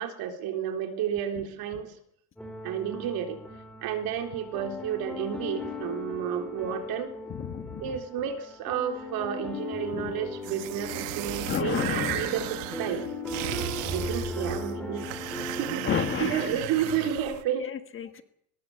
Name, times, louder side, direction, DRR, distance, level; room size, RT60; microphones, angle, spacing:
voice 1, 0.0-1.9 2.6-3.4 3.8-7.1 7.8-13.1 13.9-15.3 15.6-17.7, right 9 dB, 50° right, 4 dB, 3.8 m, -31 dB
sound 1, 2.4-16.5, left 3 dB, ahead, 4.5 m, -38 dB
voice 2, 7.3-8.0 9.9-10.1 11.5-12.3 15.8-16.6 17.6-18.2, left 8 dB, 25° left, 8 dB, 1.4 m, -31 dB
sound 2, 10.4-17.4, right 16 dB, 70° right, 1.7 m, -36 dB
22.5 x 20.0 x 7.0 m, 0.71 s
cardioid pair, 160°, 45 cm